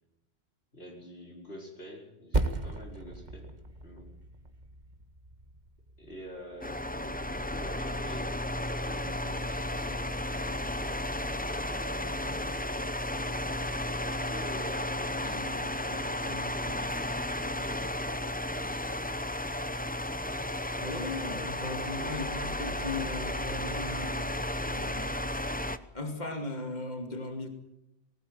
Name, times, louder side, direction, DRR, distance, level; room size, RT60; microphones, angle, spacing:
voice 1, 0.7-3.5 3.8-4.1 6.0-10.6 11.6-12.4 14.0-19.2, equal, 65° left, -1 dB, 5.1 m, -47 dB
Percussion, 2.3-7.2, right 2 dB, 40° right, 1.8 m, -36 dB
sound 1, 6.6-25.8, left 1 dB, 10° left, 0.8 m, -33 dB
voice 2, 20.8-25.4 25.9-27.5, left 2 dB, 40° left, 5 dB, 2.7 m, -38 dB
20.0 x 18.5 x 9.1 m, 0.87 s
omnidirectional pair, 1.1 m